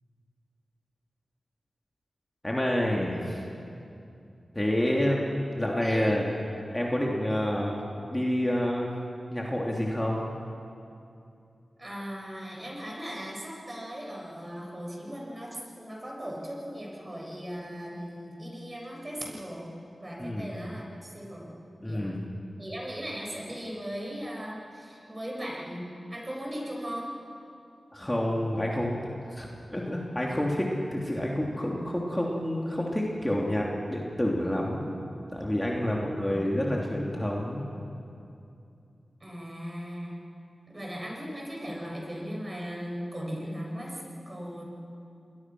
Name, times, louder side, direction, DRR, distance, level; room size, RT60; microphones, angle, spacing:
voice 1, 2.4-3.4 4.5-6.3 6.7-7.8 8.1-8.9 9.3-10.2 20.2-20.5 21.8-22.3 27.9-35.0 35.3-37.6, left 1 dB, 15° left, -2 dB, 3.1 m, -28 dB
voice 2, 5.8-6.1 11.8-19.7 20.0-21.5 21.8-22.1 22.6-27.1 36.2-36.9 39.2-40.2 40.7-44.6, equal, 30° right, -2 dB, 7.4 m, -38 dB
27.5 x 21.5 x 6.3 m, 2.6 s
cardioid pair, 50°, 0 cm